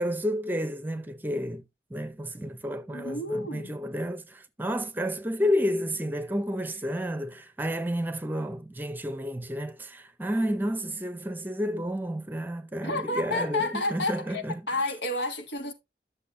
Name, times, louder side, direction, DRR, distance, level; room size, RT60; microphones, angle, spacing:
voice 1, 0.0-1.6 1.9-14.6, equal, 10° right, 0.6 m, -31 dB
voice 2, 2.9-3.8 12.8-15.7, left 2 dB, 90° left, 1.8 m, -30 dB
11.5 x 6.7 x 2.6 m
head